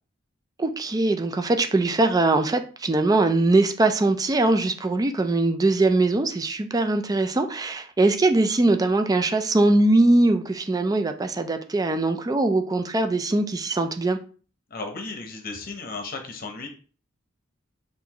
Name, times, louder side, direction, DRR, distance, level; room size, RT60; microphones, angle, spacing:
voice 1, 0.6-14.2, right 2 dB, 20° right, 0.4 m, -21 dB
voice 2, 14.7-16.7, left 3 dB, 45° left, 0.8 m, -35 dB
6.0 x 2.6 x 2.9 m
head